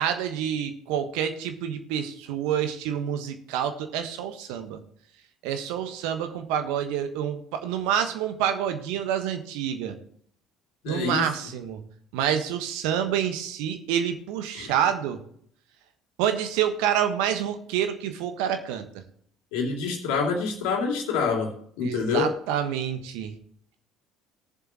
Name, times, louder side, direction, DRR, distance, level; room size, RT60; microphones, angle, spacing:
voice 1, 0.0-4.8 5.4-9.9 10.9-11.8 12.1-15.2 16.2-18.9 21.8-23.3, right 9 dB, 70° right, 8 dB, 1.3 m, -27 dB
voice 2, 10.8-11.3 14.5-14.7 19.5-22.3, left 5 dB, 70° left, 1 dB, 2.6 m, -27 dB
18.5 x 7.2 x 3.0 m, 0.63 s
hypercardioid pair, 60°, 0 cm